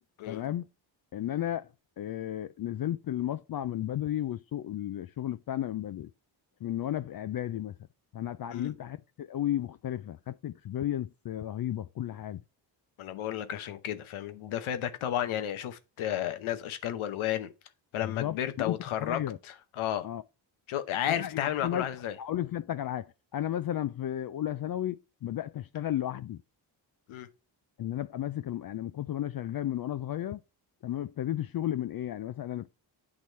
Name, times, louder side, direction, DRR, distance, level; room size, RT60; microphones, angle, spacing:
voice 1, 0.3-0.7 1.1-1.7 2.0-6.1 6.6-7.8 8.1-12.4 18.0-19.4 20.0-20.2 21.1-21.9 22.2-26.4 27.8-30.4 30.8-32.7, left 12 dB, 50° left, 0.4 m, -33 dB
voice 2, 13.0-17.5 17.9-20.1 20.7-22.2 27.1-27.3, left 11 dB, 85° left, 0.8 m, -32 dB
8.5 x 3.0 x 5.3 m
supercardioid pair, 50°, 47 cm